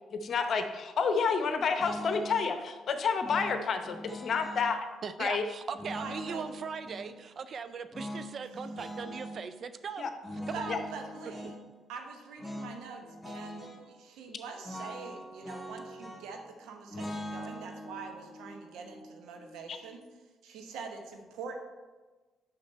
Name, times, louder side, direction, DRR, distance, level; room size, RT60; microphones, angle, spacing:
voice 1, 0.2-4.8 5.2-5.4 10.0-10.1 10.7-10.8 19.7-19.8, left 5 dB, 55° left, 7 dB, 0.8 m, -29 dB
sound 1, 1.8-2.4 3.2-4.7 5.7-7.1 7.9-9.4 10.2-11.6 12.4-12.7 13.0-13.8 14.6-16.4 16.9-20.0, equal, ahead, 1.8 m, -42 dB
voice 2, 5.0-10.1 10.5-10.8, right 6 dB, 50° right, 12 dB, 0.4 m, -39 dB
voice 3, 5.9-6.4 10.5-11.5 11.9-20.0 20.4-21.6, right 5 dB, 70° right, 4 dB, 0.9 m, -44 dB
6.5 x 5.8 x 4.2 m, 1.3 s
hypercardioid pair, 45°, 0 cm